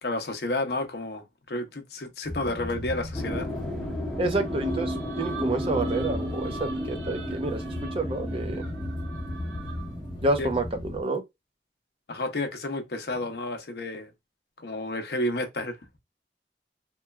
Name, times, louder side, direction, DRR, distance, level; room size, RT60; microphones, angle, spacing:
voice 1, 0.0-3.5 10.4-10.5 12.1-14.1 14.6-15.8, left 2 dB, 60° left, 0.6 m, -31 dB
sound 1, 2.2-11.0, left 1 dB, 30° left, 1.2 m, -36 dB
sound 2, 3.1-10.7, equal, ahead, 0.9 m, -34 dB
voice 2, 4.2-8.6 10.2-11.2, right 2 dB, 30° right, 0.5 m, -29 dB
sound 3, 4.4-10.1, right 6 dB, 90° right, 0.6 m, -44 dB
3.0 x 2.2 x 2.2 m
head